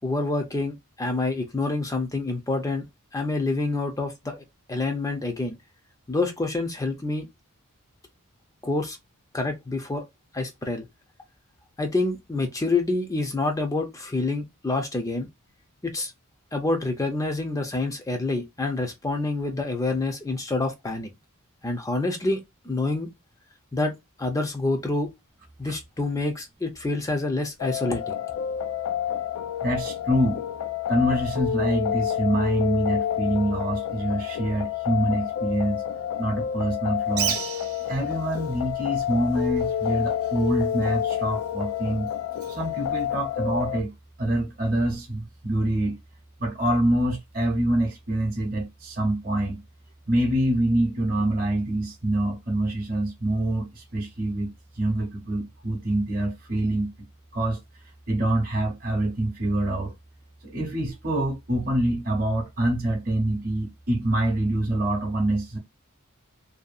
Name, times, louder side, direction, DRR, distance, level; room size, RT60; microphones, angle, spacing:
voice 1, 0.0-2.9 3.1-5.6 6.1-7.3 8.6-9.0 9.3-10.1 10.3-10.8 11.8-15.3 15.8-16.1 16.5-21.1 21.6-23.1 23.7-23.9 24.2-25.1 25.6-28.1, left 2 dB, 15° left, 0.5 m, -27 dB
sound 1, 27.6-43.8, left 9 dB, 75° left, 0.3 m, -29 dB
voice 2, 29.6-30.4 30.9-35.8 36.2-37.4 37.9-42.1 42.5-43.9 44.2-46.0 46.4-49.6 50.1-56.9 57.3-57.6 58.1-59.9 60.4-65.6, right 1 dB, 40° right, 0.8 m, -25 dB
Bird, 37.1-43.7, right 8 dB, 75° right, 0.7 m, -37 dB
2.7 x 2.3 x 2.4 m
head